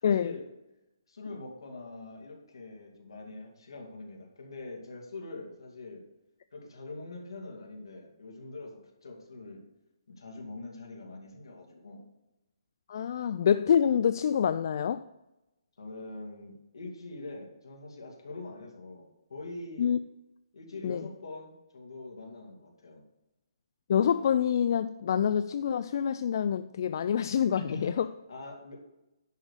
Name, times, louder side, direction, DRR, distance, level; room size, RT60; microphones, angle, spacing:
voice 1, 0.0-0.5 1.1-6.0 6.5-9.7 10.1-12.1 15.8-19.9 20.5-23.0 27.5-28.9, left 2 dB, 75° left, 2.5 m, -43 dB
voice 2, 12.9-15.0 19.8-20.0 20.8-21.0 23.9-28.1, left 8 dB, 50° left, 0.3 m, -26 dB
10.5 x 3.9 x 6.6 m
hypercardioid pair, 145°, 2 cm